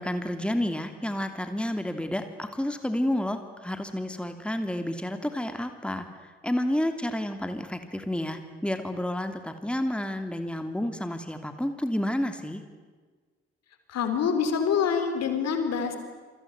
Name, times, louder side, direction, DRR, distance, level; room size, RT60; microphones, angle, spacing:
voice 1, 0.0-12.6, left 1 dB, 5° left, 8 dB, 2.9 m, -30 dB
voice 2, 13.9-16.0, left 6 dB, 55° left, 7 dB, 4.4 m, -26 dB
28.0 x 24.0 x 8.3 m, 1.4 s
figure-of-eight pair, 40°, 30 cm